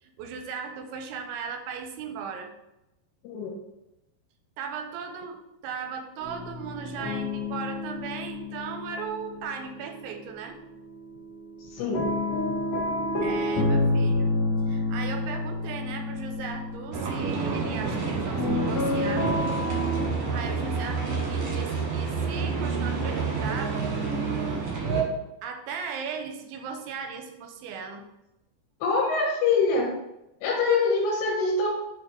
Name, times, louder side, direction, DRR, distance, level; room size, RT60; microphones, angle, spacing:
voice 1, 0.0-2.5 4.6-10.6 13.2-14.3 14.7-19.3 20.3-23.9 24.5-24.7 25.4-28.0, right 6 dB, 85° right, 6 dB, 2.9 m, -37 dB
voice 2, 3.2-3.6 11.6-12.1 28.8-29.9 30.4-31.7, left 4 dB, 75° left, -4 dB, 2.9 m, -24 dB
sound 1, 6.2-10.2 10.6-20.0, left 2 dB, 60° left, 1.7 m, -29 dB
sound 2, 16.9-25.0, right 4 dB, 65° right, 1.3 m, -29 dB
8.1 x 2.9 x 4.4 m, 0.90 s
omnidirectional pair, 5.2 m